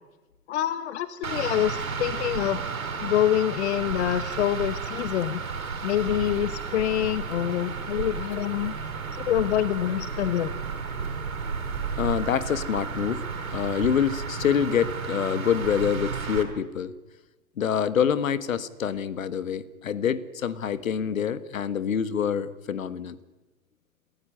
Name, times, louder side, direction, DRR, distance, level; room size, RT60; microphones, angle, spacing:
voice 1, 0.5-2.6 3.0-5.4 5.8-8.7 9.1-10.5, left 12 dB, 50° left, 15 dB, 1.1 m, -26 dB
sound 1, 1.2-16.4, right 5 dB, 70° right, 4.3 m, -32 dB
voice 2, 12.0-16.9 17.6-23.2, left 8 dB, 65° left, 16 dB, 1.5 m, -26 dB
27.0 x 14.5 x 9.7 m, 1.1 s
figure-of-eight pair, 105°, 43 cm